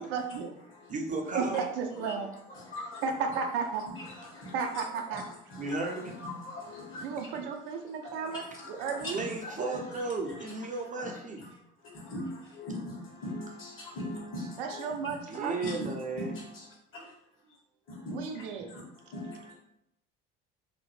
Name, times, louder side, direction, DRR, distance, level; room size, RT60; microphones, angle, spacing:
voice 1, 0.0-0.6 1.3-2.3 2.8-3.8 4.5-5.2 7.0-9.1 14.6-15.6 18.1-18.7, right 5 dB, 75° right, 3 dB, 0.5 m, -34 dB
voice 2, 0.9-1.6 5.6-6.1 9.1-11.4 15.3-16.3, right 3 dB, 25° right, 1 dB, 0.5 m, -34 dB
voice 3, 2.5-3.0 4.0-4.5 5.1-5.2 5.5-7.3 8.2-10.0 10.3-10.5 11.0-11.1 11.4-11.5 11.9-15.1 15.5-16.7 16.9-17.0 17.9-19.5, left 1 dB, 45° left, -2 dB, 1.3 m, -41 dB
2.9 x 2.1 x 3.0 m, 0.80 s
hypercardioid pair, 70°, 29 cm